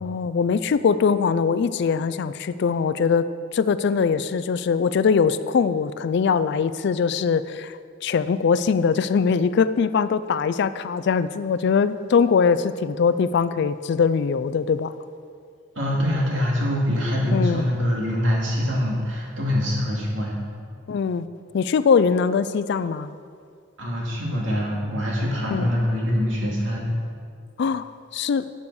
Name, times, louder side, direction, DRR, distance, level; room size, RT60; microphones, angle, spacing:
voice 1, 0.0-14.9 17.3-17.6 20.9-21.3 21.5-23.1 25.5-25.7 27.6-28.5, left 6 dB, 60° left, 14 dB, 0.3 m, -22 dB
voice 2, 15.8-20.4 23.8-26.9, equal, 75° right, -3 dB, 2.5 m, -24 dB
9.7 x 6.9 x 6.3 m, 2.2 s
head